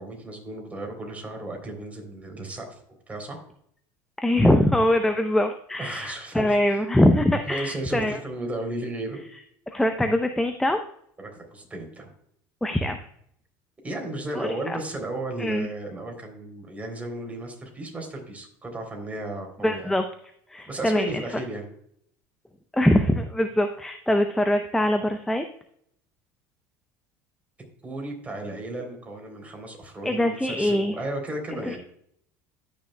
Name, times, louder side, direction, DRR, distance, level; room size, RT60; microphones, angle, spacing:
voice 1, 0.0-2.7 3.1-3.4 5.8-6.9 7.4-9.2 11.2-12.1 13.8-19.9 20.7-21.7 27.8-31.8, right 1 dB, 15° right, 2 dB, 3.4 m, -34 dB
voice 2, 4.2-8.2 9.7-10.8 12.6-13.0 14.3-14.8 15.4-15.7 19.6-20.0 20.5-21.1 22.7-25.4 30.0-31.0 31.7-31.8, left 1 dB, 5° left, 7 dB, 0.6 m, -23 dB
14.0 x 6.5 x 2.2 m, 0.69 s
supercardioid pair, 95°, 10 cm